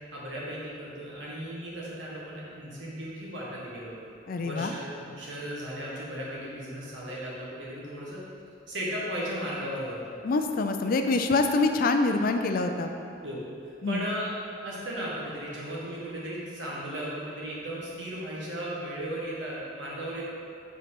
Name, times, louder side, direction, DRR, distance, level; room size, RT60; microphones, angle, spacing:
voice 1, 0.1-4.0 4.4-8.2 8.7-10.2 13.2-13.4 13.6-14.3 14.6-20.2, equal, 65° right, -6 dB, 1.6 m, -36 dB
voice 2, 4.3-4.7 10.2-12.9 13.8-14.0, left 3 dB, 50° left, 6 dB, 0.4 m, -25 dB
5.1 x 4.5 x 5.8 m, 2.5 s
head